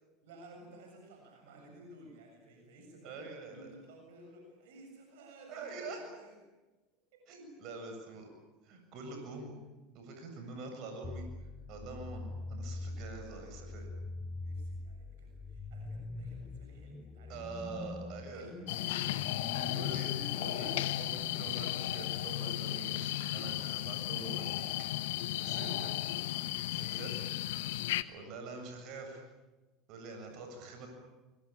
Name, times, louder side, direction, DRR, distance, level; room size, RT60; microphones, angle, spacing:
voice 1, 0.2-6.4 7.1-7.2 14.4-17.7 18.3-20.9 30.3-30.6, right 1 dB, 70° right, 3 dB, 7.2 m, -54 dB
voice 2, 3.0-3.7 5.5-6.1 7.3-8.3 8.6-9.6 9.9-11.3 11.7-13.9 17.3-18.5 19.6-20.1 20.4-24.7 25.4-25.9 26.7-27.3 28.0-29.2 29.9-30.9, right 3 dB, 55° right, 4 dB, 7.6 m, -45 dB
sound 1, 11.0-21.4, left 2 dB, 20° left, 1.5 m, -44 dB
sound 2, 18.7-28.0, left 14 dB, 70° left, 1.1 m, -35 dB
24.5 x 24.0 x 8.9 m, 1.1 s
hypercardioid pair, 80°, 0 cm